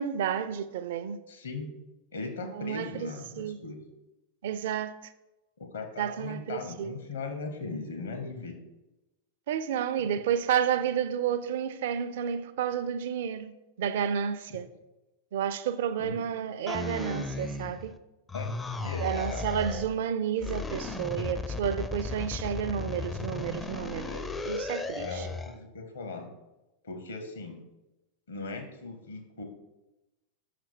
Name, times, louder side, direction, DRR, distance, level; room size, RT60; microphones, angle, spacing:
voice 1, 0.0-1.2 2.4-3.1 3.4-3.6 4.4-5.1 6.0-7.0 9.5-13.5 13.8-14.7 15.3-17.9 18.8-24.1 24.4-25.3, right 8 dB, 55° right, 0.4 m, -31 dB
voice 2, 1.3-1.7 2.1-3.8 5.6-8.6 16.0-16.1 18.3-18.6 18.8-19.5 21.1-21.3 24.0-24.2 25.0-26.3 26.8-27.6 28.3-29.4, left 3 dB, 65° left, 1.0 m, -39 dB
sound 1, 16.7-18.0 18.3-20.0 20.4-25.6, left 3 dB, 10° left, 0.4 m, -35 dB
5.9 x 5.1 x 4.4 m
figure-of-eight pair, 90°, 0 cm